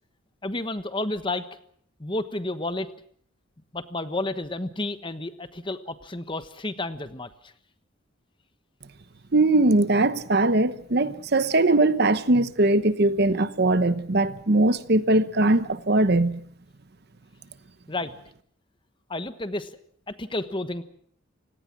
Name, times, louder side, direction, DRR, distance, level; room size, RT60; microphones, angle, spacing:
voice 1, 0.4-1.5 2.0-2.9 3.7-7.5 17.9-18.1 19.1-19.7 20.1-20.8, left 2 dB, 25° left, 1.2 m, -31 dB
voice 2, 9.3-16.4, right 2 dB, 50° right, 1.0 m, -21 dB
29.0 x 18.0 x 6.0 m
head